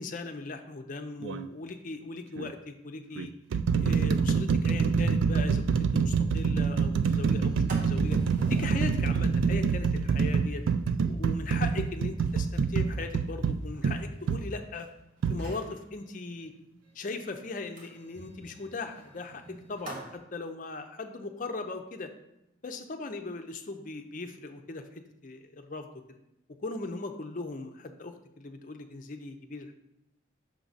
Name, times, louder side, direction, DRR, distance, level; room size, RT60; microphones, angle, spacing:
voice 1, 0.0-3.3 3.8-8.2 8.5-10.6 11.1-14.9 15.3-16.5 16.9-22.1 22.6-26.2 26.6-29.7, left 3 dB, 45° left, 6 dB, 0.5 m, -39 dB
sound 1, 1.2-1.5 2.4-2.5 3.2-14.5 15.2-15.4, right 5 dB, 80° right, 0.3 m, -26 dB
sound 2, 4.8-11.0, equal, 25° right, 2.5 m, -44 dB
Sliding door, 5.3-5.4 5.7-5.8 6.2-6.5 6.8-14.8 15.3-15.8 17.8-20.1, right 1 dB, 45° right, 1.1 m, -45 dB
6.4 x 4.8 x 4.0 m, 0.89 s
head